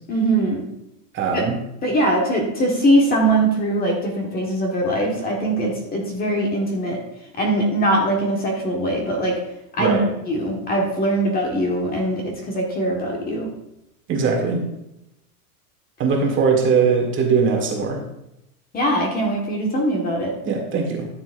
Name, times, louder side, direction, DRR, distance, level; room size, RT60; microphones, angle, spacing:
voice 1, 0.1-0.6 1.3-1.4 1.8-7.0 7.4-9.4 9.8-10.0 10.2-13.5 18.7-20.3, right 1 dB, 20° left, 0 dB, 1.5 m, -21 dB
voice 2, 1.1-1.5 9.8-10.0 14.1-14.6 16.0-18.0 20.4-21.1, right 5 dB, 25° right, 1 dB, 1.7 m, -20 dB
13.5 x 7.3 x 2.6 m, 0.84 s
supercardioid pair, 145°, 47 cm